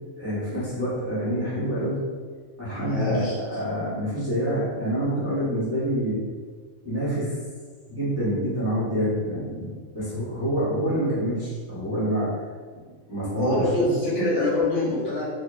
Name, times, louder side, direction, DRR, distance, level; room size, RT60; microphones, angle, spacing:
voice 1, 0.2-2.0 2.6-6.2 6.8-7.3 7.9-12.3 13.1-13.9, equal, 10° right, -11 dB, 1.2 m, -27 dB
voice 2, 2.7-3.4 13.3-15.2, left 2 dB, 60° left, -8 dB, 1.6 m, -24 dB
5.0 x 2.6 x 2.6 m, 1.5 s
omnidirectional pair, 1.4 m